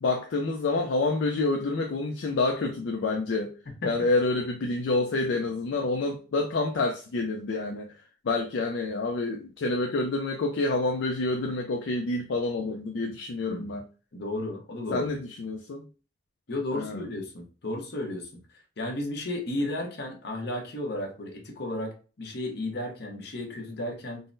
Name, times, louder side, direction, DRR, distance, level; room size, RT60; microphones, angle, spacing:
voice 1, 0.0-3.5 3.8-13.8 14.9-15.9 16.7-17.0, left 3 dB, 80° left, 0.4 m, -28 dB
voice 2, 14.1-15.1 16.5-18.3 18.8-24.2, left 1 dB, 65° left, 0.9 m, -33 dB
3.7 x 2.0 x 2.5 m
head